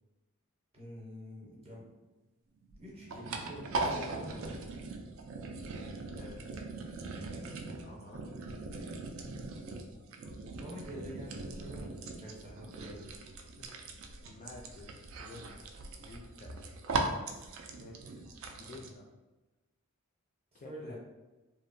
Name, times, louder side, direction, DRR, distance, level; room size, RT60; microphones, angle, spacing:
voice 1, 0.7-1.9 2.7-4.6 10.6-13.1 20.5-21.0, equal, 25° right, -4 dB, 0.6 m, -47 dB
sound 1, 2.6-18.9, right 3 dB, 60° right, 0.3 m, -40 dB
voice 2, 6.2-6.6 7.8-8.3 13.5-13.7 14.2-18.3 18.6-19.1 20.5-21.0, left 2 dB, 35° left, 0 dB, 0.3 m, -51 dB
2.7 x 2.1 x 2.6 m, 1.1 s
head